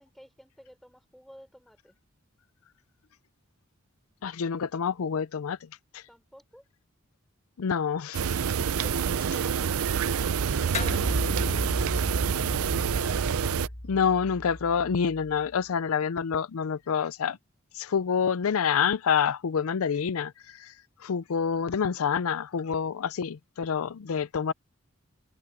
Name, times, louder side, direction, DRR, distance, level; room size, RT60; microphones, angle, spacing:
voice 1, 0.0-2.0 6.1-6.6, equal, ahead, 3.3 m, -53 dB
voice 2, 4.2-5.6 5.9-6.0 7.6-8.4 13.8-17.4 17.7-20.7 21.0-24.5, left 6 dB, 85° left, 0.5 m, -27 dB
sound 1, 8.1-13.7, right 7 dB, 90° right, 0.5 m, -27 dB
sound 2, 10.7-15.5, left 1 dB, 30° left, 1.5 m, -35 dB
open air
head